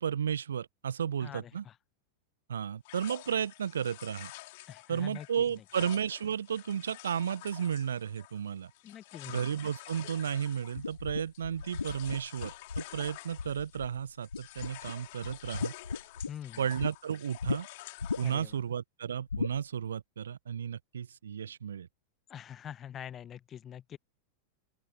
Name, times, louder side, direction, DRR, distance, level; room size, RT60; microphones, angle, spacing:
voice 1, 0.0-1.6 2.5-4.3 4.9-8.7 9.3-15.7 16.6-17.7 18.2-21.9, right 8 dB, 65° right, 1.1 m, -33 dB
voice 2, 1.2-1.7 4.7-5.3 5.5-5.6 8.8-9.4 16.3-16.7 18.2-18.6 22.3-24.0, left 9 dB, 25° left, 1.1 m, -44 dB
sound 1, 2.8-13.9 14.2-18.5, left 21 dB, 50° left, 5.9 m, -49 dB
sound 2, 10.8-14.0 14.3-14.9 15.2-16.9 17.4-17.6 18.0-18.5 19.3-19.6, left 4 dB, 75° left, 2.4 m, -36 dB
open air
figure-of-eight pair, 90°, 0 cm